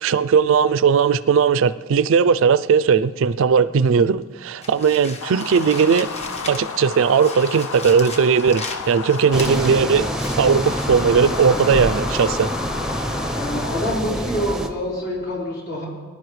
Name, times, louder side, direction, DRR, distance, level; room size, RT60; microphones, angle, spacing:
voice 1, 0.0-6.1 6.5-10.1 10.4-12.5, right 6 dB, 65° right, 0.4 m, -18 dB
sound 1, 4.6-6.8 7.2-11.5, left 3 dB, 30° left, 1.2 m, -37 dB
sound 2, 5.2-14.0, left 5 dB, 85° left, 0.7 m, -31 dB
sound 3, 9.3-14.7, right 1 dB, 5° right, 0.7 m, -26 dB
voice 2, 13.3-15.9, equal, 55° left, 4.3 m, -26 dB
23.5 x 11.0 x 3.2 m
head